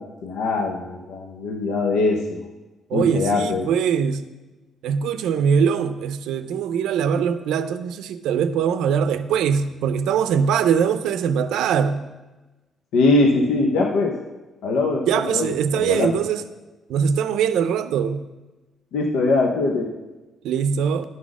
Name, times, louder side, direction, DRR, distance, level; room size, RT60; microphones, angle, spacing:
voice 1, 0.0-2.4 2.9-3.7 12.9-14.1 14.6-16.1 18.9-19.9, left 3 dB, 90° left, 1 dB, 0.8 m, -22 dB
voice 2, 2.9-4.3 4.8-12.1 15.1-16.4 16.9-18.2 20.4-21.0, right 7 dB, 85° right, 11 dB, 0.5 m, -22 dB
11.0 x 4.1 x 6.1 m, 1.1 s
cardioid pair, 90°, 0 cm